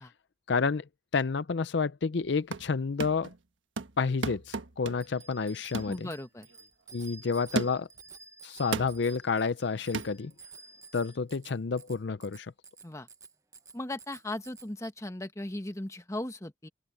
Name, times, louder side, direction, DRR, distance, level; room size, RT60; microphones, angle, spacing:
voice 1, 0.5-0.8 1.1-3.3 4.0-6.1 6.9-7.9 8.4-10.3 10.9-12.5, left 5 dB, 65° left, 0.5 m, -30 dB
sound 1, 2.2-2.7 3.0-3.4 3.8-5.2 5.7-6.0 6.5-6.6 7.6-8.0 8.7-9.0 9.9-10.1, right 3 dB, 80° right, 1.3 m, -35 dB
Bicycle bell, 5.0-14.7, right 4 dB, 15° right, 1.1 m, -52 dB
voice 2, 5.9-6.5 12.8-13.1 13.7-16.7, left 1 dB, 15° left, 1.2 m, -37 dB
head